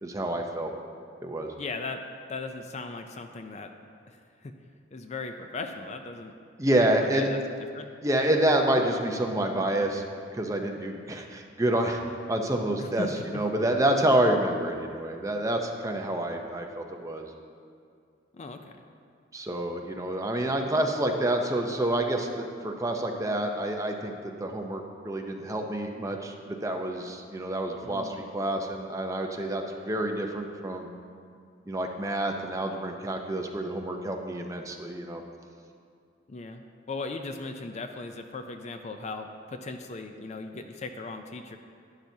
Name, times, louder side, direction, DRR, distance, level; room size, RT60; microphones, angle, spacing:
voice 1, 0.0-0.7 1.2-1.5 6.6-7.3 8.0-10.0 10.3-12.0 12.3-17.3 19.3-24.1 24.4-30.9 31.7-35.2, right 1 dB, 15° right, 2 dB, 0.6 m, -28 dB
voice 2, 1.6-2.0 2.3-3.7 4.1-4.2 4.4-4.5 4.9-6.3 7.1-7.4 7.7-7.9 12.8-13.1 18.3-18.6 27.8-28.2 36.3-36.6 36.9-41.6, left 3 dB, 35° left, 6 dB, 0.4 m, -37 dB
11.5 x 10.5 x 2.7 m, 2.3 s
head